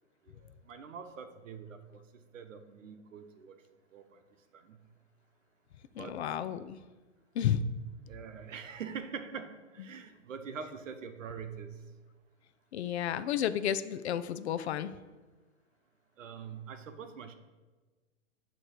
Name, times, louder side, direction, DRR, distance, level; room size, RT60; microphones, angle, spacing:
voice 1, 0.3-2.0 2.3-3.5 3.9-4.2 4.5-4.8 5.9-6.2 8.1-11.8 16.2-17.4, right 6 dB, 75° right, 9 dB, 0.9 m, -44 dB
voice 2, 6.0-6.8 7.4-7.6 12.7-14.9, left 10 dB, 60° left, 13 dB, 0.5 m, -32 dB
8.7 x 3.1 x 5.0 m, 1.3 s
hypercardioid pair, 140°, 38 cm